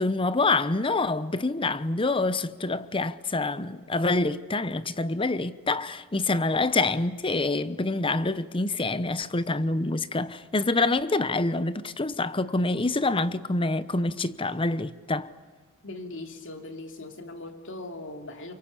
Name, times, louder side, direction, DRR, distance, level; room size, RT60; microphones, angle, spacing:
voice 1, 0.0-15.3, left 2 dB, 25° left, 0.9 m, -26 dB
voice 2, 15.8-18.5, left 2 dB, 60° left, 2.9 m, -39 dB
29.0 x 24.0 x 8.5 m
head